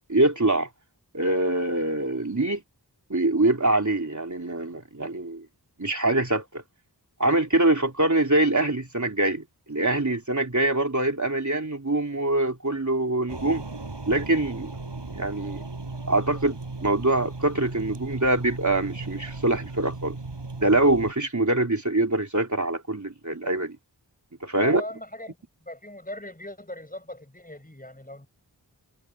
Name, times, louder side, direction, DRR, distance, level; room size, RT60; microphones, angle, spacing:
voice 1, 0.1-0.7 1.1-2.6 3.1-5.5 5.8-6.6 7.2-13.7 14.1-14.7 15.1-15.6 16.1-20.2 20.6-23.8 24.4-24.8, right 2 dB, 45° right, 3.7 m, -24 dB
sound 1, 13.3-21.1, right 3 dB, 75° right, 7.7 m, -36 dB
voice 2, 24.6-25.4 25.6-28.3, left 1 dB, 20° left, 5.5 m, -39 dB
wide cardioid pair, 45°, 42 cm